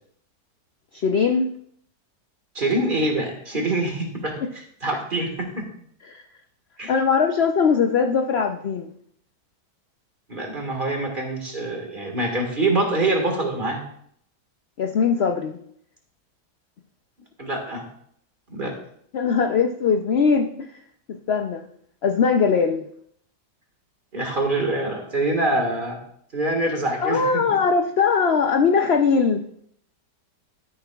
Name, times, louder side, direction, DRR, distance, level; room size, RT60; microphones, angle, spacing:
voice 1, 0.9-1.5 3.5-3.7 6.0-6.2 6.9-8.9 14.8-15.6 19.1-20.7 21.1-21.7 22.0-22.8 27.0-29.4, left 5 dB, 70° left, 6 dB, 0.6 m, -21 dB
voice 2, 2.6-5.7 6.8-6.9 10.3-13.8 17.4-17.9 18.5-18.7 24.1-26.0 26.3-27.6, right 2 dB, 30° right, 2 dB, 1.8 m, -25 dB
12.0 x 10.5 x 2.3 m, 0.66 s
omnidirectional pair, 1.8 m